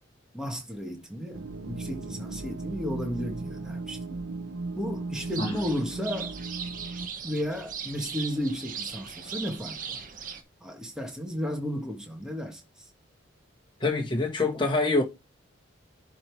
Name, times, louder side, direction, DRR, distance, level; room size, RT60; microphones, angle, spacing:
voice 1, 0.3-4.0 4.7-6.3 7.2-10.0 10.6-12.9, equal, 5° right, 1.6 m, -33 dB
sound 1, 1.3-7.1, right 3 dB, 80° right, 0.8 m, -37 dB
sound 2, 5.1-10.4, right 7 dB, 45° right, 1.2 m, -39 dB
voice 2, 13.8-15.0, left 3 dB, 25° left, 1.9 m, -25 dB
11.0 x 3.7 x 4.6 m
head